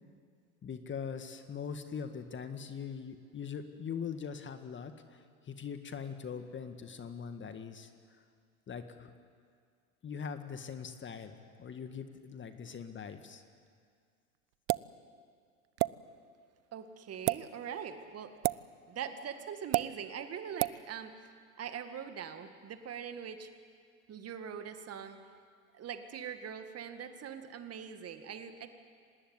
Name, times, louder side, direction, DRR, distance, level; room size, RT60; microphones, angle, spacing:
voice 1, 0.6-7.9 8.7-9.1 10.0-13.4, left 6 dB, 25° left, 8 dB, 1.9 m, -42 dB
sound 1, 14.7-14.9 15.8-15.9 17.1-17.4 18.4-18.6 19.7-19.9 20.6-20.8, right 26 dB, 50° right, 0.6 m, -28 dB
voice 2, 16.7-18.4 18.9-21.2 21.6-23.5 24.1-25.2 25.7-28.7, right 8 dB, 35° right, 8 dB, 2.1 m, -42 dB
25.5 x 19.5 x 9.7 m, 2.1 s
hypercardioid pair, 85°, 44 cm